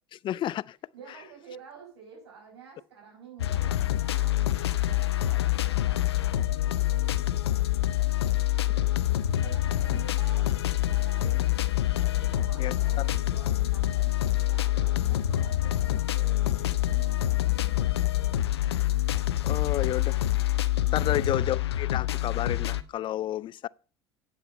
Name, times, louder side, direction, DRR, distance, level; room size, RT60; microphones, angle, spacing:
voice 1, 0.1-0.8 3.5-3.7 12.5-13.1 19.4-20.2 20.9-23.7, left 12 dB, 40° left, 0.4 m, -31 dB
voice 2, 0.9-7.2 9.4-10.5 10.9-11.4 11.9-17.9 20.8-21.2, right 6 dB, 85° right, 5.4 m, -49 dB
sound 1, 3.4-22.8, left 14 dB, 85° left, 0.6 m, -26 dB
8.9 x 8.0 x 5.3 m
hypercardioid pair, 75°, 13 cm